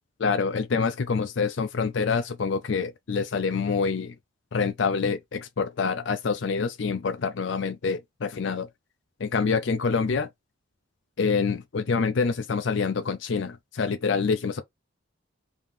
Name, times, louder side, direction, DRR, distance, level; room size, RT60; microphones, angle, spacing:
voice 1, 0.2-4.1 4.5-8.7 9.2-10.3 11.2-14.6, left 5 dB, 60° left, 0.5 m, -26 dB
3.6 x 2.9 x 3.3 m
head